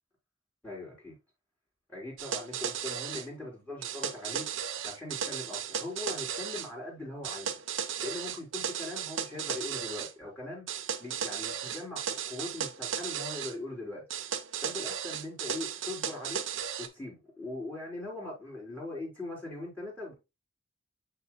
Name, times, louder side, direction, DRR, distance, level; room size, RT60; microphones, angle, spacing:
voice 1, 0.6-1.2 1.9-4.5 4.8-7.5 8.0-10.7 11.0-14.0 14.6-16.4 16.8-20.1, left 2 dB, 10° left, 3.5 m, -40 dB
sound 1, 2.2-3.3 3.8-6.7 7.2-10.1 10.7-13.5 14.1-16.9, right 8 dB, 70° right, 0.8 m, -35 dB
7.1 x 6.5 x 2.2 m
head